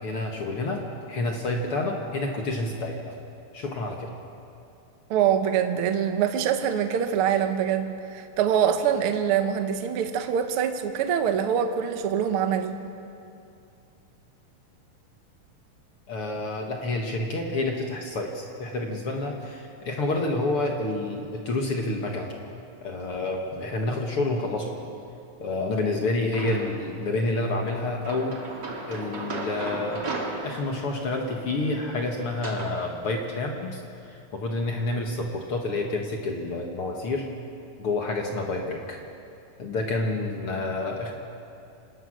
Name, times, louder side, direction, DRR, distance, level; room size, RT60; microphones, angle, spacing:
voice 1, 0.0-3.1 3.5-4.1 16.1-22.3 22.8-24.7 25.4-28.4 28.9-30.1 30.4-37.3 37.8-39.0 39.6-41.1, left 2 dB, 50° left, 1 dB, 1.9 m, -29 dB
voice 2, 5.1-12.8, right 8 dB, 75° right, 7 dB, 1.3 m, -24 dB
sound 1, 26.3-26.9 27.7-32.8, right 3 dB, 35° right, 2.4 m, -36 dB
27.0 x 18.5 x 6.4 m, 2.6 s
omnidirectional pair, 4.1 m